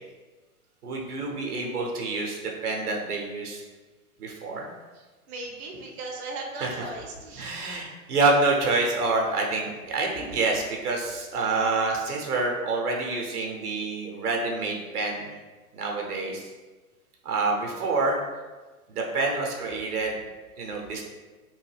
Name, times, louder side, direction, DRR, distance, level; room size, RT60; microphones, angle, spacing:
voice 1, 0.8-3.6 4.2-4.7 6.6-6.7 7.4-15.3 15.7-16.5 17.2-18.2 18.9-20.2 20.6-21.0, right 3 dB, 80° right, 0 dB, 0.8 m, -27 dB
voice 2, 5.3-7.5 20.6-20.7, right 2 dB, 45° right, -1 dB, 0.6 m, -37 dB
3.1 x 2.2 x 3.2 m, 1.3 s
hypercardioid pair, 110°, 45 cm